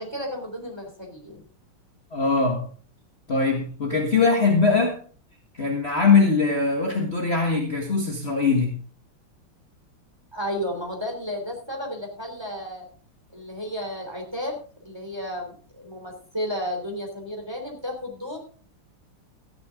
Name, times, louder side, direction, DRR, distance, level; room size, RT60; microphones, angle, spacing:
voice 1, 0.0-1.4 10.3-12.8 13.3-14.5 14.8-18.4, equal, 10° right, 2 dB, 3.3 m, -33 dB
voice 2, 2.1-2.6 3.3-5.0 5.6-8.8, left 4 dB, 30° left, 0 dB, 1.8 m, -21 dB
14.0 x 10.5 x 3.8 m, 0.42 s
omnidirectional pair, 2.4 m